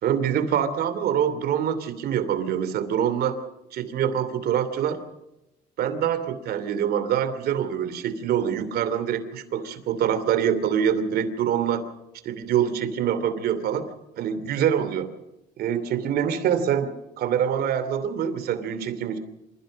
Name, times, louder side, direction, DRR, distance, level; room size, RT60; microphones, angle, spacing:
voice 1, 0.0-3.4 3.7-5.0 5.8-11.8 12.2-13.9 14.2-15.1 15.6-19.2, right 9 dB, 70° right, 11 dB, 2.9 m, -25 dB
27.5 x 16.0 x 6.4 m, 0.92 s
cardioid pair, 110°, 17 cm